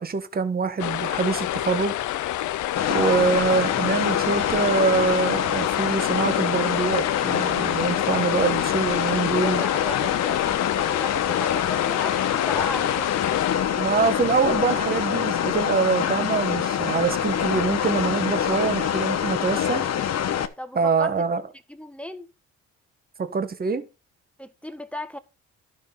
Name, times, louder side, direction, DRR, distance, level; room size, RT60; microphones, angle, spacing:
voice 1, 0.0-1.9 2.9-9.6 13.8-19.8 20.7-21.4 23.2-23.8, right 5 dB, 30° right, 1.3 m, -24 dB
sound 1, 0.8-13.6, left 13 dB, 75° left, 0.7 m, -28 dB
sound 2, 2.8-20.5, left 9 dB, 60° left, 1.2 m, -25 dB
voice 2, 9.4-13.1 20.6-21.1 21.7-22.3 24.4-25.2, left 1 dB, 5° left, 1.3 m, -36 dB
11.5 x 6.3 x 5.3 m
cardioid pair, 90°, 30 cm